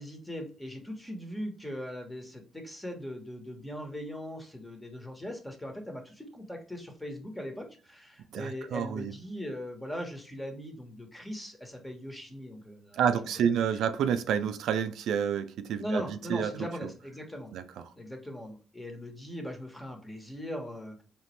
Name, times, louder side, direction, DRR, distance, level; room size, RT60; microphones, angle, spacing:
voice 1, 0.0-13.0 13.4-13.6 15.8-17.5 17.9-21.0, equal, 10° left, 1.2 m, -40 dB
voice 2, 8.3-9.1 12.9-16.5 17.5-17.6, right 8 dB, 80° right, 0.4 m, -29 dB
4.2 x 3.0 x 3.2 m
cardioid pair, 90°, 0 cm